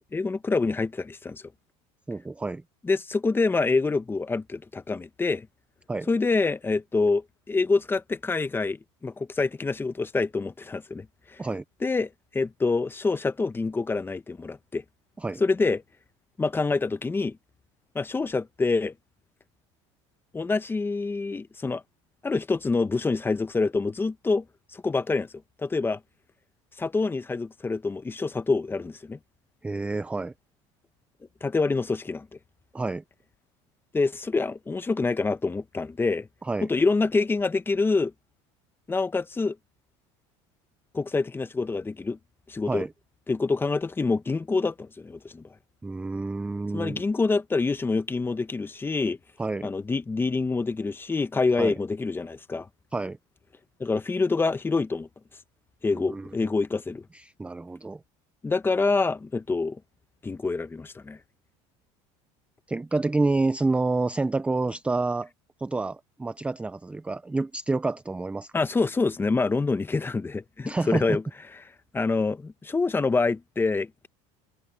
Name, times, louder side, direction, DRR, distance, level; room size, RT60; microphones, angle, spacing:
voice 1, 0.1-1.4 2.8-5.5 6.1-11.4 11.8-14.8 15.4-15.8 16.4-17.4 17.9-18.9 20.3-21.8 22.2-24.4 24.7-25.3 25.6-26.0 26.8-29.2 31.4-32.3 33.9-36.3 36.6-38.1 38.9-39.6 40.9-42.2 42.5-42.8 43.3-45.4 46.7-49.2 49.6-52.7 53.8-55.1 55.8-57.0 58.4-59.8 60.2-61.2 68.5-71.2 71.9-74.1, left 3 dB, 15° left, 1.0 m, -26 dB
voice 2, 2.1-2.6 5.9-6.1 11.4-11.6 15.2-15.4 29.6-30.3 32.7-33.0 36.4-36.7 42.7-42.9 45.8-47.0 49.4-49.7 51.6-51.7 52.9-53.2 55.9-56.5 57.1-58.0 62.7-65.3 65.6-68.5 70.7-71.2, right 3 dB, 10° right, 0.4 m, -28 dB
supercardioid pair, 125°, 15 cm